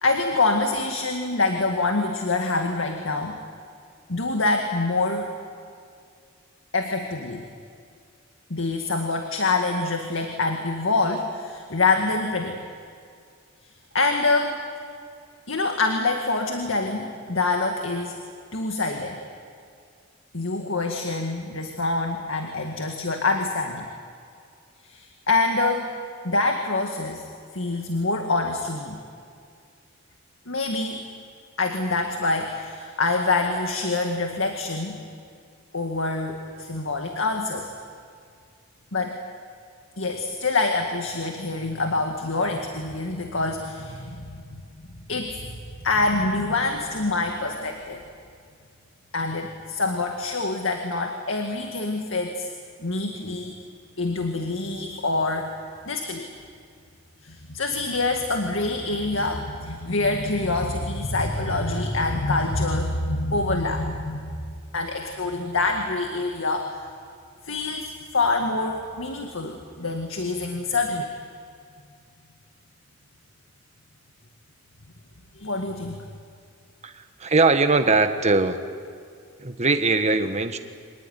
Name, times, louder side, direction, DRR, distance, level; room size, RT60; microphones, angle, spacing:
voice 1, 0.0-3.4 4.1-5.3 6.7-7.5 8.5-12.6 13.9-14.6 15.5-18.2 18.5-19.2 20.3-23.9 24.8-25.9 26.2-27.3 27.5-29.0 30.5-31.0 31.6-35.0 35.7-37.7 38.9-39.2 40.0-44.6 45.1-45.4 45.8-48.0 49.1-52.5 52.8-53.6 54.0-55.5 55.9-56.3 57.2-64.4 64.7-66.9 67.4-71.1 75.4-76.0, left 3 dB, 75° left, 3 dB, 2.1 m, -25 dB
voice 2, 76.8-78.6 79.4-80.6, right 3 dB, 35° right, 8 dB, 1.4 m, -21 dB
26.0 x 19.5 x 9.7 m, 2.3 s
head